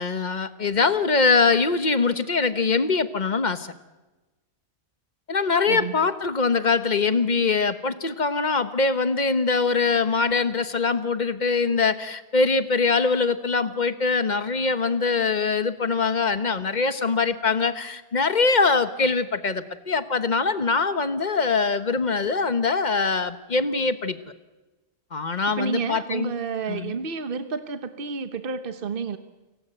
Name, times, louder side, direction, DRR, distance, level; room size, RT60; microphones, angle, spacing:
voice 1, 0.0-3.7 5.3-24.2 25.1-26.3 26.7-27.0, left 4 dB, 45° left, 12 dB, 1.3 m, -23 dB
voice 2, 25.6-29.2, right 5 dB, 55° right, 10 dB, 1.2 m, -30 dB
29.5 x 17.5 x 7.9 m, 1.2 s
omnidirectional pair, 1.1 m